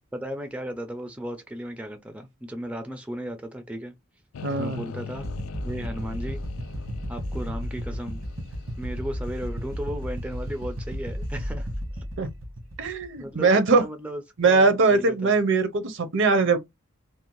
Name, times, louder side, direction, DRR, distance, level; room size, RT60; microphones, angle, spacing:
voice 1, 0.1-3.9 4.6-5.3 5.6-6.4 7.1-8.2 8.8-12.0 13.2-15.3, equal, 5° right, 0.3 m, -35 dB
sound 1, 4.3-11.5, left 6 dB, 85° left, 0.4 m, -42 dB
voice 2, 4.4-4.8 12.2-12.3 12.8-13.8 14.4-16.6, right 3 dB, 65° right, 0.6 m, -21 dB
sound 2, 5.1-13.3, equal, 85° right, 1.0 m, -33 dB
2.6 x 2.1 x 2.9 m
head